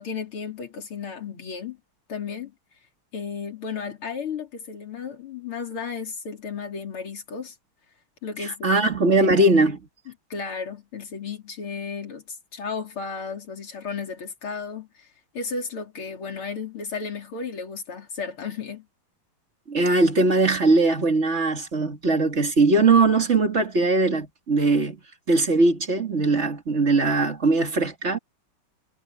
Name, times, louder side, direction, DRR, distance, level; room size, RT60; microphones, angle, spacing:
voice 1, 0.0-1.8 2.1-2.5 3.1-7.5 8.2-8.9 9.2-9.5 10.3-15.1 15.3-18.9, left 5 dB, 75° left, 4.6 m, -34 dB
voice 2, 8.4-9.8 19.7-25.0 25.3-28.2, right 3 dB, 30° right, 2.6 m, -20 dB
omnidirectional pair, 2.4 m